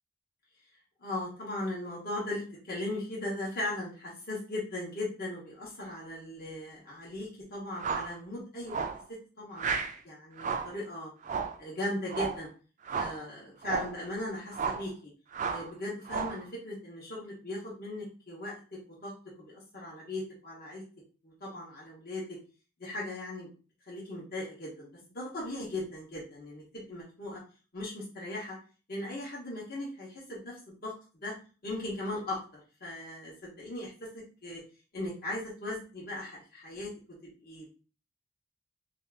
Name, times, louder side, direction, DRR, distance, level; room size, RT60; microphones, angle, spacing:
voice 1, 1.0-9.0 9.4-9.8 10.0-11.1 11.6-12.5 12.9-15.1 15.5-18.6 19.0-19.1 19.4-20.8 21.2-22.4 22.8-23.5 23.9-27.4 27.7-28.6 28.9-30.9 31.2-31.3 31.6-33.9 34.4-34.6 34.9-36.9 37.4-37.7, left 1 dB, 50° left, -5 dB, 1.0 m, -38 dB
sound 1, 7.8-8.1 8.7-9.0 9.6-10.0 10.4-10.8 11.2-11.6 12.1-12.4 12.9-13.2 13.6-14.0 14.5-14.9 15.3-15.7 16.1-16.4, right 5 dB, 40° right, 0.4 m, -33 dB
2.7 x 2.4 x 3.4 m, 0.36 s
head